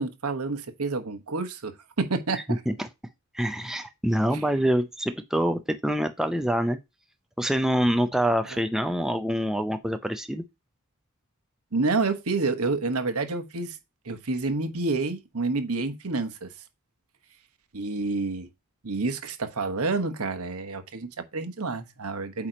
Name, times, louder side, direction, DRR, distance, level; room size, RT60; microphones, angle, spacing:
voice 1, 0.0-2.6 8.5-8.6 11.7-13.8 14.0-16.5 17.7-18.5 18.8-22.5, right 3 dB, 75° right, 1.1 m, -29 dB
voice 2, 2.3-2.9 3.3-6.8 7.4-10.4, equal, ahead, 0.5 m, -26 dB
8.5 x 2.9 x 5.0 m
head